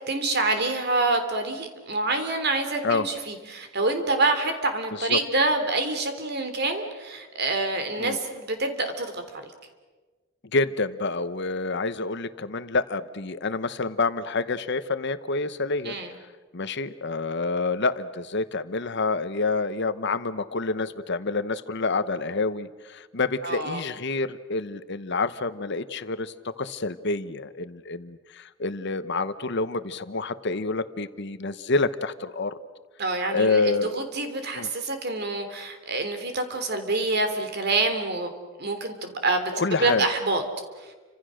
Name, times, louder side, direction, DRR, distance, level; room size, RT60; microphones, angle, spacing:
voice 1, 0.1-9.5 15.8-16.1 23.4-23.8 33.0-38.3 38.6-40.4, right 2 dB, 55° right, 7 dB, 3.3 m, -27 dB
voice 2, 10.5-16.0 16.5-32.6 33.3-34.0 34.5-34.7 39.5-40.0, left 3 dB, 60° left, 12 dB, 1.0 m, -28 dB
30.0 x 26.0 x 6.5 m, 1.3 s
head